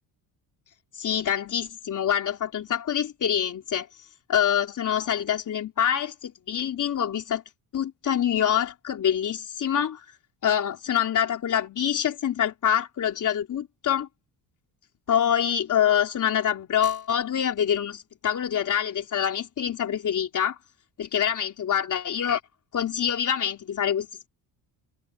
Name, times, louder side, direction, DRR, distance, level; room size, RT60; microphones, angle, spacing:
voice 1, 1.0-3.9 4.3-7.4 7.7-10.0 10.4-14.1 15.1-20.6 21.0-22.4 22.7-24.1, left 9 dB, 45° left, 3.6 m, -25 dB
cardioid pair, 135°, 41 cm